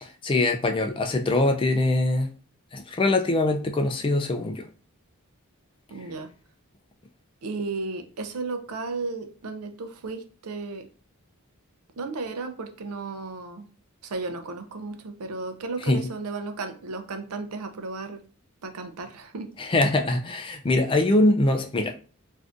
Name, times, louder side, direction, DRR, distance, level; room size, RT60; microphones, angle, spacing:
voice 1, 0.0-2.3 2.7-4.6 15.9-16.0 19.6-21.9, left 2 dB, 25° left, 0.3 m, -23 dB
voice 2, 5.9-6.3 7.4-10.9 12.0-13.7 14.0-18.2 18.6-19.5, right 3 dB, 80° right, 0.5 m, -34 dB
3.5 x 2.6 x 2.5 m
head